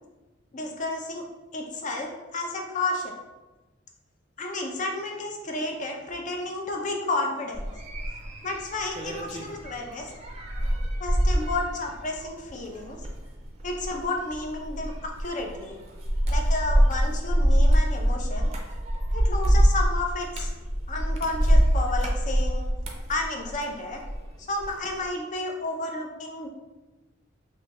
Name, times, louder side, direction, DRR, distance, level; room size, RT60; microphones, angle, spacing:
voice 1, 0.5-1.2 1.5-3.1 4.4-7.7 8.4-10.1 11.0-13.0 13.6-15.8 16.3-18.5 19.1-20.5 20.9-22.7 23.1-24.0 24.5-26.5, left 2 dB, 40° left, 2 dB, 0.5 m, -31 dB
sound 1, 7.5-24.3 24.6-25.0, equal, 35° right, 0.5 m, -25 dB
3.3 x 2.7 x 3.0 m, 1.1 s
head